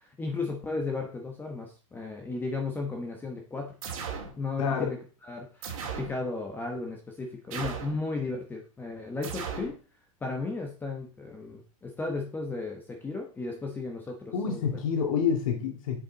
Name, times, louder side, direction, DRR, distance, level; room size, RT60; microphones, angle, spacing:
voice 1, 0.0-3.7 4.4-5.0 5.2-9.8 10.2-14.8, left 3 dB, 10° left, 2 dB, 1.1 m, -34 dB
sound 1, 3.8-4.3 5.6-6.2 7.5-8.0 9.2-9.7, right 6 dB, 75° right, 2.7 m, -36 dB
voice 2, 4.6-4.9 14.3-16.0, left 6 dB, 70° left, 2 dB, 2.4 m, -28 dB
7.6 x 7.3 x 4.0 m, 0.38 s
supercardioid pair, 145°, 18 cm